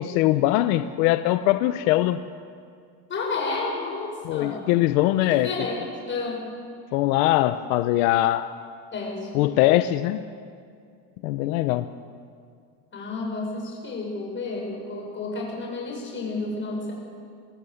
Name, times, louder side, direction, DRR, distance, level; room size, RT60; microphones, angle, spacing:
voice 1, 0.0-2.2 4.2-5.5 6.9-8.5 9.3-10.3 11.2-11.9, left 15 dB, 85° left, 11 dB, 0.9 m, -21 dB
voice 2, 3.1-4.6 5.2-6.4 8.9-9.5 12.9-16.9, left 3 dB, 25° left, -1 dB, 7.0 m, -31 dB
23.0 x 17.0 x 8.0 m, 2.2 s
cardioid pair, 145°, 43 cm